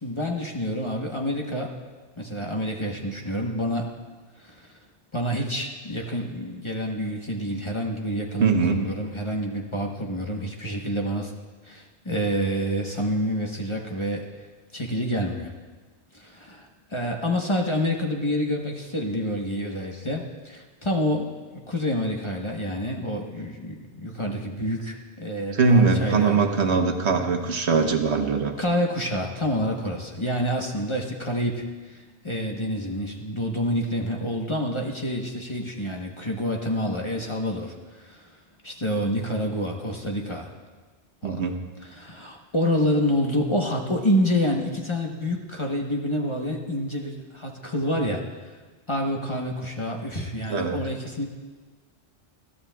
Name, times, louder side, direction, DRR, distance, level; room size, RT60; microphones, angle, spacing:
voice 1, 0.0-1.7 2.2-3.9 4.4-4.7 5.1-11.3 11.6-14.3 14.7-15.5 16.1-26.4 28.6-38.4 38.6-40.5 41.2-41.5 41.8-48.2 48.9-51.3, equal, 25° left, 0 dB, 1.0 m, -28 dB
voice 2, 8.4-8.8 25.5-28.6 41.2-41.6 50.5-50.8, right 4 dB, 70° right, 4 dB, 1.2 m, -21 dB
20.5 x 14.0 x 2.3 m, 1.4 s
omnidirectional pair, 1.2 m